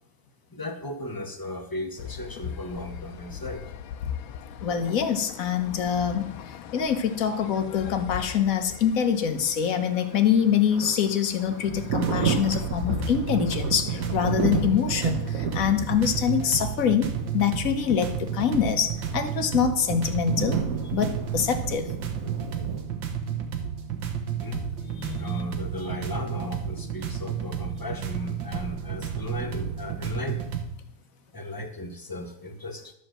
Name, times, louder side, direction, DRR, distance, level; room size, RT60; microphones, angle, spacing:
voice 1, 0.5-3.6 24.4-24.6 25.1-30.4 31.3-32.9, left 1 dB, 20° left, 5 dB, 0.6 m, -36 dB
sound 1, 2.0-16.7, left 8 dB, 80° left, 1.5 m, -40 dB
voice 2, 4.6-20.6 20.9-21.9 25.0-25.2, left 8 dB, 50° left, 8 dB, 1.2 m, -25 dB
Thunder, 10.0-22.8, right 6 dB, 50° right, 1.5 m, -33 dB
sound 2, 11.7-30.7, right 8 dB, 70° right, 1.8 m, -32 dB
12.5 x 5.0 x 7.6 m, 0.75 s
omnidirectional pair, 2.2 m